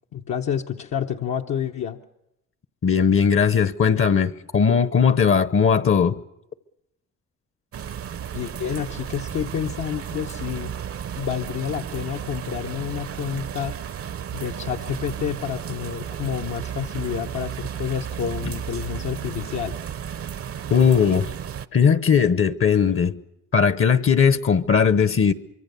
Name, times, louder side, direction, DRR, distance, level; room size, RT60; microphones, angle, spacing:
voice 1, 0.1-2.0 8.3-10.7 11.2-13.8 14.3-19.8, left 8 dB, 65° left, 1.1 m, -29 dB
voice 2, 2.8-6.2 20.7-21.3 21.7-23.2 23.5-25.3, left 6 dB, 45° left, 1.0 m, -18 dB
sound 1, 7.7-21.7, right 9 dB, 50° right, 0.8 m, -33 dB
24.0 x 24.0 x 6.9 m
cardioid pair, 90°, 30 cm